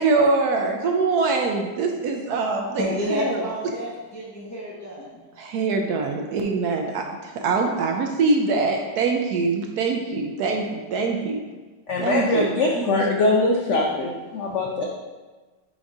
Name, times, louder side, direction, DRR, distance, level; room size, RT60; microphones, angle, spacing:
voice 1, 0.0-3.5 5.5-6.9 7.4-10.6 10.9-11.4 12.0-12.5, right 4 dB, 70° right, 2 dB, 1.0 m, -23 dB
voice 2, 2.8-5.2, left 1 dB, 20° left, -5 dB, 0.5 m, -29 dB
voice 3, 11.9-14.8, left 2 dB, 75° left, -1 dB, 0.6 m, -22 dB
5.2 x 4.0 x 4.8 m, 1.3 s
omnidirectional pair, 2.0 m